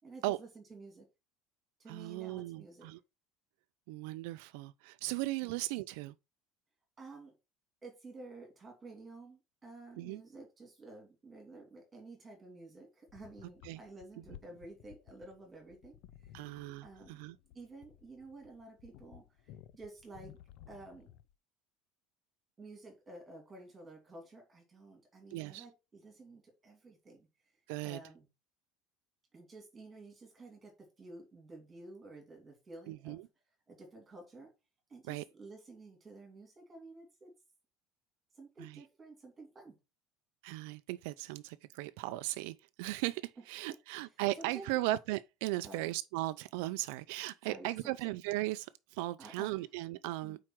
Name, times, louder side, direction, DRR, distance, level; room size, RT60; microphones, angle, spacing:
voice 1, 0.0-1.1 1.8-2.9 5.4-5.6 7.0-7.3 7.8-16.5 16.8-17.2 17.5-20.4 20.7-21.1 22.6-27.2 27.8-28.3 29.3-33.2 33.7-34.5 34.9-37.3 38.4-39.7 43.7-44.0 44.4-44.7 45.6-45.9 47.4-47.9 49.2-49.5 50.2-50.4, right 2 dB, 15° right, 2.5 m, -52 dB
voice 2, 1.9-3.0 3.9-6.1 10.0-10.2 13.6-13.8 16.3-17.4 25.3-25.6 27.7-28.0 32.9-33.2 35.1-35.2 38.6-38.8 40.4-50.4, right 18 dB, 80° right, 0.3 m, -37 dB
sound 1, 13.1-21.3, left 11 dB, 60° left, 0.4 m, -57 dB
4.7 x 4.5 x 6.0 m
cardioid pair, 170°, 0 cm